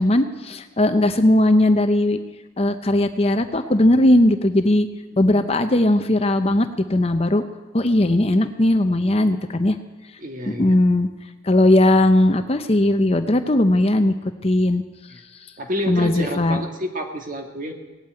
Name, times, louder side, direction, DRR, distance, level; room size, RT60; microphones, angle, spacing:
voice 1, 0.0-2.2 2.6-4.9 5.2-7.4 7.7-9.8 10.5-11.1 11.4-14.1 14.4-14.8 15.9-16.6, left 1 dB, 30° left, 8 dB, 0.7 m, -18 dB
voice 2, 5.2-5.6 10.2-10.8 15.1-15.2 15.6-17.7, equal, 40° right, 3 dB, 1.8 m, -29 dB
18.0 x 8.7 x 8.9 m, 1.2 s
head